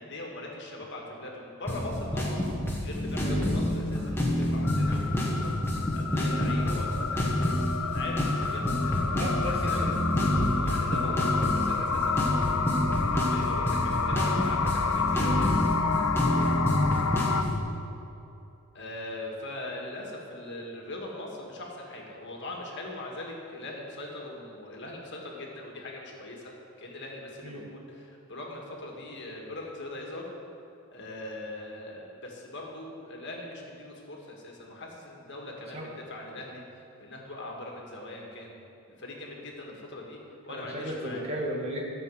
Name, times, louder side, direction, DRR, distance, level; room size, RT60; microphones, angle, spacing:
voice 1, 0.0-2.4 2.8-9.0 9.6-9.9 10.3-15.6 18.7-30.3 30.9-38.6 39.0-40.2 40.5-41.3, left 1 dB, 55° left, -1 dB, 1.9 m, -41 dB
sound 1, 1.7-17.6, left 1 dB, 10° left, 1.6 m, -28 dB
voice 2, 3.2-3.7 4.9-5.1 9.1-10.7 16.3-16.6 27.4-27.7 35.7-35.9 40.5-41.9, equal, 25° right, -2 dB, 1.8 m, -36 dB
sound 2, 4.6-17.4, left 5 dB, 75° left, 0.7 m, -30 dB
13.0 x 6.4 x 7.7 m, 2.8 s
head